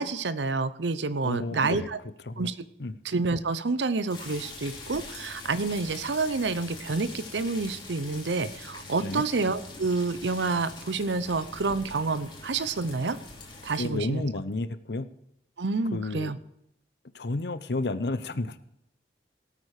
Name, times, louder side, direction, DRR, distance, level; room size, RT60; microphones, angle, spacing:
voice 1, 0.0-2.0 2.4-2.5 3.0-13.2 13.6-14.3 15.6-16.4, right 3 dB, 80° right, 15 dB, 0.7 m, -28 dB
voice 2, 1.2-1.9 2.3-2.5 2.8-3.0 9.0-9.2 13.8-15.1 15.9-16.3 17.1-18.6, left 2 dB, 65° left, 13 dB, 0.8 m, -31 dB
sound 1, 4.1-13.9, left 3 dB, 25° left, 3.0 m, -43 dB
18.0 x 8.6 x 4.9 m, 0.80 s
head